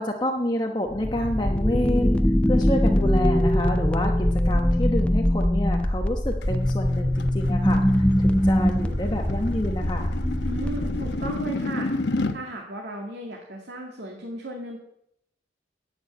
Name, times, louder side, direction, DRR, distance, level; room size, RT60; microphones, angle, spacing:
voice 1, 0.0-2.2 2.5-10.1, left 1 dB, 25° left, 1 dB, 1.1 m, -28 dB
sound 1, 0.9-11.5, left 1 dB, 5° left, 0.6 m, -22 dB
sound 2, 6.4-12.4, left 2 dB, 80° left, 1.0 m, -31 dB
voice 2, 10.4-11.9 12.3-14.8, right 1 dB, 75° right, 0 dB, 2.1 m, -35 dB
11.0 x 8.7 x 9.0 m, 0.78 s
head